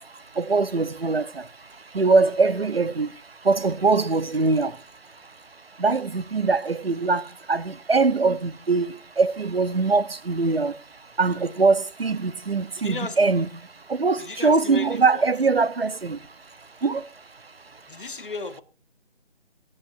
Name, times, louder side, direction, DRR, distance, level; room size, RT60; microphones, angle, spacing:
voice 1, 0.4-1.4 1.9-3.1 3.4-4.7 5.8-7.2 7.5-10.7 11.2-13.5 13.9-16.2 16.8-17.0, right 4 dB, 65° right, 1.0 m, -22 dB
voice 2, 12.8-13.2 14.2-15.3 17.9-18.6, left 3 dB, 50° left, 1.4 m, -35 dB
23.0 x 8.8 x 2.6 m
figure-of-eight pair, 155°, 33 cm